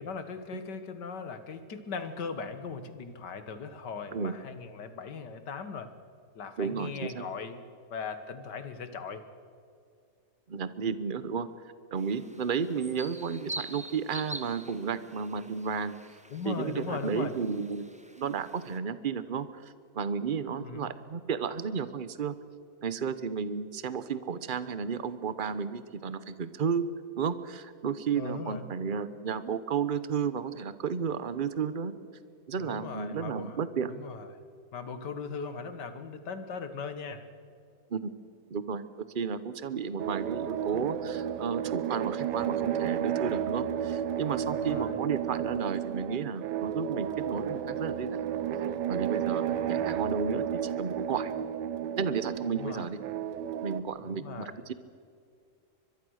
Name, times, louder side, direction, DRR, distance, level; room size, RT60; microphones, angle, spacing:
voice 1, 0.0-5.9 6.3-7.6 7.9-9.2 16.3-17.3 20.6-20.9 28.1-28.6 32.6-33.6 33.9-34.4 34.7-37.3 44.5-45.0 49.5-50.0 52.5-52.9 54.0-54.6, left 5 dB, 85° left, 10 dB, 2.1 m, -39 dB
voice 2, 6.6-7.2 10.5-11.5 11.9-16.0 16.5-17.9 18.1-22.3 22.8-31.9 32.5-33.9 37.9-38.1 38.5-38.8 39.1-48.2 48.9-51.3 51.9-53.0 53.6-54.7, right 6 dB, 40° right, 14 dB, 0.9 m, -33 dB
sound 1, 12.0-18.8, right 1 dB, 5° right, 1.1 m, -45 dB
sound 2, 40.0-53.8, right 9 dB, 85° right, 1.4 m, -32 dB
24.0 x 22.0 x 6.5 m, 2.3 s
omnidirectional pair, 1.8 m